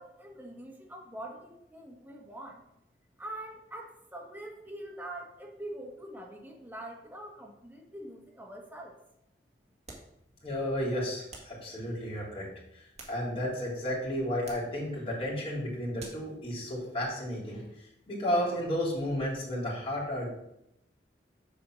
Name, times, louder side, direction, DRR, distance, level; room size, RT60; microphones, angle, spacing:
voice 1, 0.0-2.6 3.2-8.9, right 1 dB, 10° right, -1 dB, 1.6 m, -44 dB
sound 1, 9.8-10.2 11.3-11.6 12.7-13.6 14.4-14.8 16.0-16.3, right 3 dB, 40° right, 1.9 m, -49 dB
voice 2, 10.4-12.5 12.7-17.6 18.1-20.3, equal, 35° left, -6 dB, 3.2 m, -32 dB
7.1 x 5.0 x 6.3 m, 0.80 s
head